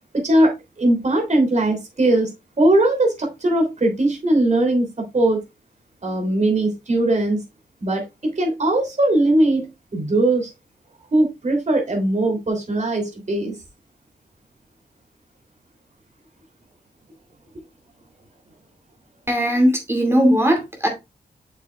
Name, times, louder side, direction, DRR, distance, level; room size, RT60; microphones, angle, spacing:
voice 1, 0.1-2.3 2.6-5.4 6.0-7.4 7.8-10.5 11.1-13.6, right 1 dB, 45° right, 3.3 m, -20 dB
voice 2, 19.3-20.9, equal, 15° right, 2.5 m, -18 dB
7.8 x 6.7 x 2.4 m
wide cardioid pair, 90°, 17 cm